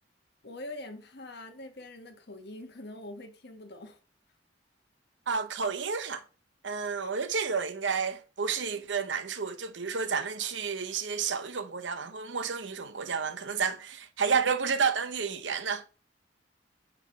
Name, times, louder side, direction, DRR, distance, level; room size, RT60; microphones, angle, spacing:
voice 1, 0.4-4.0, left 1 dB, 65° left, 1.4 m, -44 dB
voice 2, 5.3-6.2 6.6-15.9, right 5 dB, 85° right, 0.9 m, -31 dB
9.0 x 3.4 x 5.3 m
head